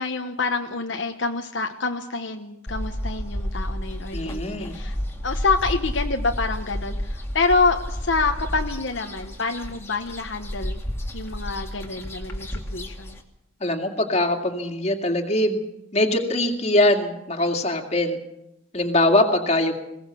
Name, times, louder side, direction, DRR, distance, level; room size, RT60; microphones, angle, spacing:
voice 1, 0.0-5.0 5.2-10.8 11.1-13.2, left 4 dB, 70° left, 4 dB, 1.2 m, -27 dB
sound 1, 2.7-13.2, equal, 15° left, 2.2 m, -31 dB
voice 2, 4.1-4.8 13.6-15.6 15.9-18.2 18.7-19.8, left 1 dB, 35° left, 3 dB, 2.3 m, -22 dB
21.5 x 17.5 x 7.0 m, 0.88 s
head